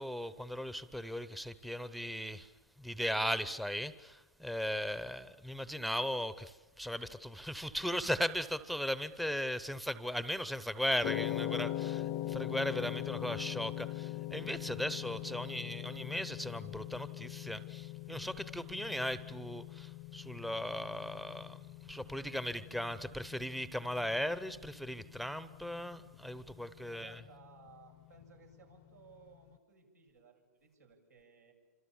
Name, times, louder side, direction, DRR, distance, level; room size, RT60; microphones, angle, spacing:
voice 1, 0.0-2.5 2.8-27.2, equal, ahead, 0.9 m, -37 dB
sound 1, 11.0-29.3, left 14 dB, 40° left, 0.8 m, -42 dB
voice 2, 26.9-31.5, right 4 dB, 90° right, 7.9 m, -60 dB
28.5 x 26.5 x 7.3 m
hypercardioid pair, 120°, 9 cm